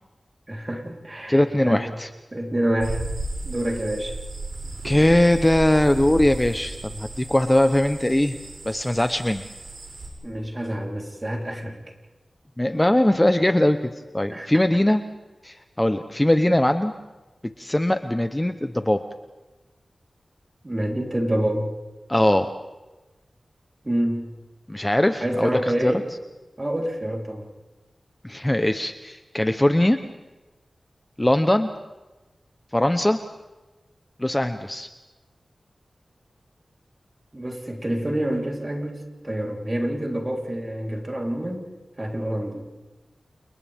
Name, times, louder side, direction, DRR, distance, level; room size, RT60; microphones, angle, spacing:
voice 1, 0.5-1.8 2.3-3.0 3.4-4.2 10.2-11.8 14.3-14.5 20.6-21.7 23.8-24.3 25.2-26.0 26.6-27.5 37.3-41.7 42.0-42.7, right 1 dB, 25° right, 0 dB, 3.8 m, -27 dB
voice 2, 1.3-2.1 4.8-8.3 8.6-9.5 12.6-13.8 14.1-15.0 15.4-16.9 17.6-19.0 22.1-22.5 24.7-25.9 28.2-30.0 31.2-31.7 32.7-33.2 34.2-34.9, left 1 dB, 15° left, 8 dB, 0.9 m, -20 dB
sound 1, 2.8-10.1, right 2 dB, 85° right, 6.7 m, -35 dB
30.0 x 29.5 x 3.6 m, 1.1 s
wide cardioid pair, 80°, 0 cm